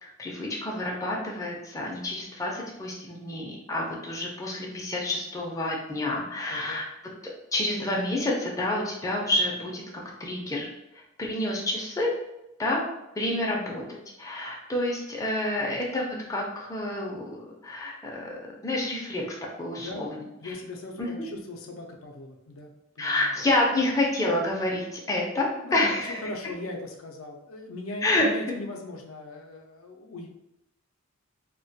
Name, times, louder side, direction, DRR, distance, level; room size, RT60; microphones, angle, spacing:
voice 1, 0.0-6.8 7.5-9.8 10.2-10.7 11.2-12.1 12.6-12.8 13.2-18.3 18.6-20.5 21.0-21.1 23.0-26.2 28.0-28.3, left 1 dB, 15° left, -3 dB, 0.4 m, -28 dB
voice 2, 6.5-6.8 15.6-15.8 19.8-20.1 20.4-23.3 25.6-25.9 26.2-30.3, left 2 dB, 80° left, 1 dB, 0.4 m, -39 dB
2.2 x 2.1 x 2.6 m, 0.88 s
head